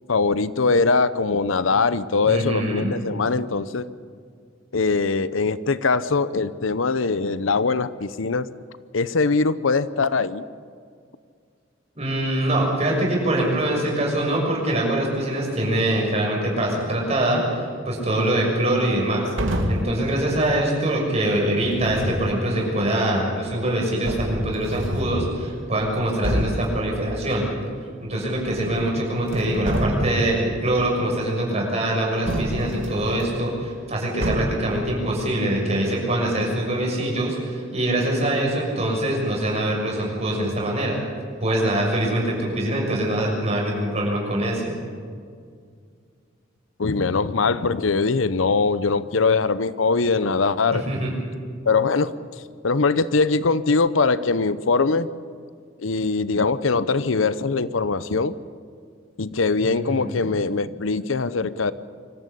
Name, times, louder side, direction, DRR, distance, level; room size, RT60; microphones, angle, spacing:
voice 1, 0.1-3.9 4.7-8.5 8.9-10.4 46.8-50.8 51.6-52.1 52.6-55.1 55.8-58.3 59.2-61.7, left 4 dB, 85° left, 15 dB, 0.7 m, -22 dB
voice 2, 2.2-2.9 11.9-19.3 19.7-27.5 28.0-41.0 41.4-44.8 50.7-51.1 59.6-60.3, right 1 dB, 35° right, -2 dB, 6.6 m, -24 dB
sound 1, 19.4-20.0 21.6-22.3 23.5-23.6 24.0-25.3 25.8-25.9 26.2-26.7 28.3-28.9 29.2-30.3 32.3-33.2 34.2-34.7, equal, 75° right, 2.6 m, -27 dB
24.5 x 15.0 x 8.5 m, 2.1 s
head